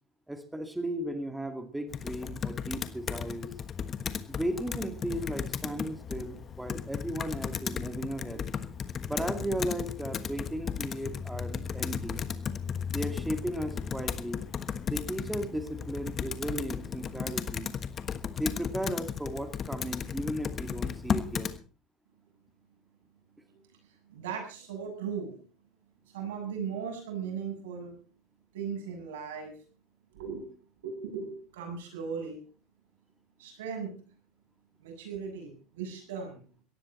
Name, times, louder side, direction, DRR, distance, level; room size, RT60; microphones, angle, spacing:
voice 1, 0.3-3.5 4.3-8.5 9.1-12.2 12.9-14.4 14.9-17.7 18.3-21.5, right 1 dB, 5° right, 7 dB, 2.1 m, -35 dB
Computer keyboard, 1.9-21.6, left 7 dB, 35° left, 1.3 m, -35 dB
voice 2, 23.5-25.3 26.1-28.0 28.5-29.5 30.1-30.4 30.8-32.4 33.4-34.0 34.8-36.4, right 6 dB, 90° right, 3 dB, 7.6 m, -38 dB
18.0 x 14.0 x 4.2 m, 0.37 s
supercardioid pair, 110°, 0 cm